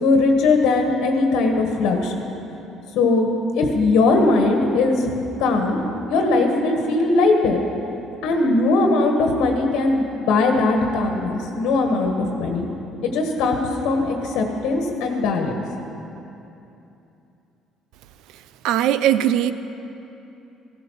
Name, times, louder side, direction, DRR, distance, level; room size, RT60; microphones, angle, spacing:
voice 1, 0.0-2.3 2.9-3.3 3.5-5.1 5.4-5.8 6.1-7.6 8.2-12.7 13.0-15.5, left 3 dB, 90° left, 3 dB, 1.5 m, -20 dB
voice 2, 18.6-19.5, right 11 dB, 80° right, 13 dB, 0.5 m, -19 dB
15.0 x 12.0 x 5.8 m, 2.9 s
cardioid pair, 110°, 0 cm